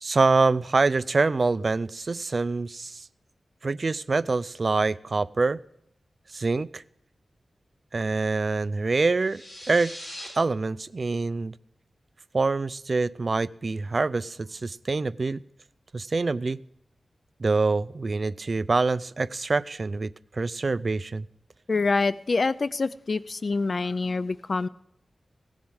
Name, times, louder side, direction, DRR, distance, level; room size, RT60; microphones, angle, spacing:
voice 1, 0.0-3.1 3.6-5.6 6.3-6.8 7.9-9.9 10.3-11.5 12.3-15.4 15.9-16.6 17.4-21.3, right 3 dB, 45° right, 16 dB, 0.3 m, -25 dB
sound 1, 9.1-10.3, equal, 20° left, 5.3 m, -40 dB
voice 2, 21.7-24.7, left 3 dB, 50° left, 17 dB, 0.3 m, -26 dB
17.0 x 7.1 x 4.8 m, 0.78 s
wide cardioid pair, 90°, 0 cm